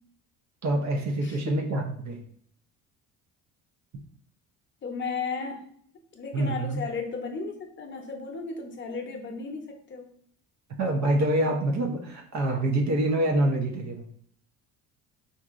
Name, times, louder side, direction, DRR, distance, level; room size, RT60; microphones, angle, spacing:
voice 1, 0.6-2.2 6.3-6.8 10.8-14.1, right 1 dB, 50° right, 2 dB, 0.7 m, -26 dB
voice 2, 1.2-1.7 4.8-5.6 6.1-10.1, left 4 dB, 30° left, 3 dB, 0.7 m, -35 dB
3.6 x 2.6 x 2.5 m, 0.64 s
cardioid pair, 95°, 36 cm